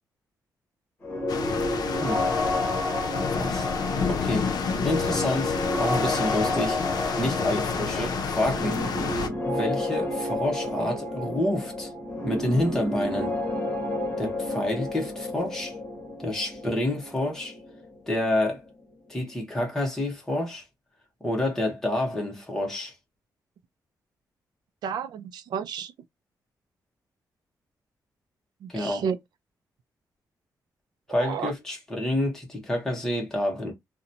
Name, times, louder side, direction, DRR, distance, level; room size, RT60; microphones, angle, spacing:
sound 1, 1.0-18.7, left 2 dB, 25° left, 1.0 m, -31 dB
sound 2, 1.3-9.3, left 5 dB, 70° left, 0.5 m, -29 dB
voice 1, 2.0-2.3 3.3-3.7 4.1-4.5 4.8-6.8 7.2-8.8 9.4-11.9 12.2-13.4 14.2-15.8 16.2-17.6 18.1-18.6 19.1-20.6 21.2-22.9 28.7-29.1 31.1-33.7, left 1 dB, 5° left, 0.8 m, -28 dB
voice 2, 24.8-25.9 28.6-29.2 31.1-31.5, right 7 dB, 85° right, 0.4 m, -31 dB
2.8 x 2.1 x 2.5 m
wide cardioid pair, 175°, 7 cm